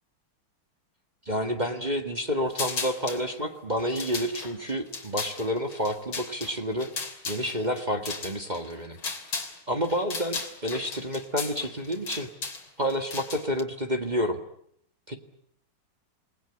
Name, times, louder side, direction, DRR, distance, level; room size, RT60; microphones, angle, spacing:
voice 1, 1.3-6.9 7.3-9.0 9.7-12.3 12.8-14.4 15.1-15.2, equal, 20° right, 5 dB, 1.8 m, -29 dB
sound 1, 2.5-3.2 3.8-9.6 9.8-13.6, left 4 dB, 80° left, 3.9 m, -36 dB
27.5 x 20.0 x 9.8 m, 0.68 s
omnidirectional pair, 2.2 m